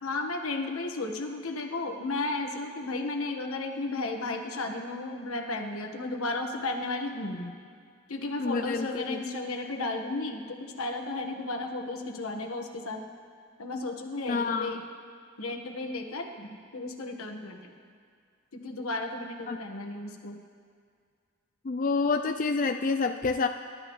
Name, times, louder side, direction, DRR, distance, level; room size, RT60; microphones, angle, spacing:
voice 1, 0.0-7.5 8.1-13.0 13.6-14.8 15.4-17.7 18.5-20.4, left 2 dB, 85° left, 3 dB, 1.5 m, -34 dB
voice 2, 8.4-9.2 14.3-14.8 19.5-19.6 21.6-23.5, left 4 dB, 40° left, 6 dB, 0.4 m, -28 dB
27.5 x 12.5 x 3.2 m, 2.1 s
head